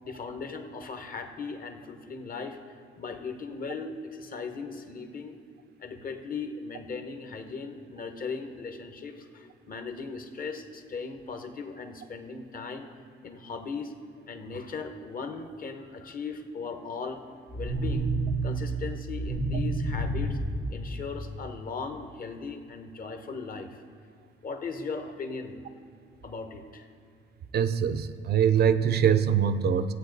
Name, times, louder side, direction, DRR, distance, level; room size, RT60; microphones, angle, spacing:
voice 1, 0.0-2.6 3.0-5.4 5.8-12.9 13.2-13.9 14.3-17.2 17.5-18.1 18.4-20.4 20.7-23.8 24.4-25.6 26.2-26.9, left 4 dB, 45° left, 6 dB, 1.1 m, -38 dB
sound 1, 17.5-21.5, right 2 dB, 80° left, 1.6 m, -30 dB
voice 2, 27.5-29.9, right 8 dB, 55° right, 11 dB, 0.5 m, -23 dB
14.5 x 8.4 x 4.0 m, 2.5 s
cardioid pair, 90°, 20 cm